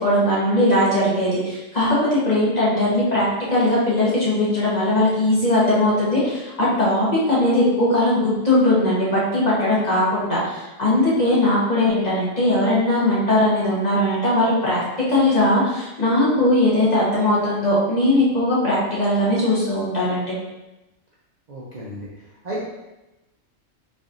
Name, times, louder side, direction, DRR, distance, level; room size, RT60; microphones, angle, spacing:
voice 1, 0.0-3.3 3.5-14.8 15.1-20.3, left 1 dB, 35° left, -7 dB, 1.0 m, -19 dB
voice 2, 21.5-22.1 22.4-22.6, right 1 dB, 45° right, -7 dB, 0.6 m, -32 dB
4.1 x 3.5 x 2.5 m, 0.99 s
omnidirectional pair, 1.4 m